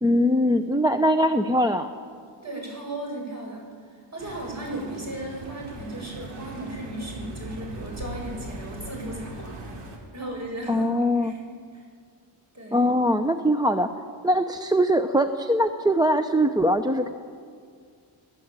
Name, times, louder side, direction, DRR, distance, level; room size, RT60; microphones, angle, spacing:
voice 1, 0.0-1.9 10.7-11.3 12.7-17.1, equal, 10° right, 8 dB, 0.8 m, -22 dB
voice 2, 2.4-3.7 4.1-9.6 10.1-11.5 11.7-11.8 12.5-12.9, right 1 dB, 35° right, 0 dB, 7.9 m, -36 dB
sound 1, 4.2-10.0, right 1 dB, 85° right, 4.5 m, -39 dB
26.5 x 16.5 x 9.0 m, 2.1 s
cardioid pair, 115°, 49 cm